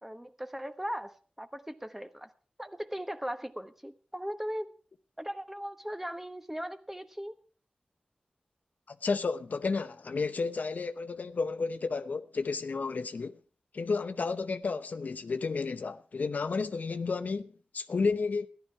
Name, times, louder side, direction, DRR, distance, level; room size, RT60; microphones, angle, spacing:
voice 1, 0.0-2.3 2.6-4.7 5.2-7.4, equal, 10° right, 1.1 m, -38 dB
voice 2, 8.9-13.4 13.7-18.5, left 4 dB, 80° left, 0.8 m, -32 dB
14.0 x 11.5 x 4.6 m
wide cardioid pair, 75°, 3 cm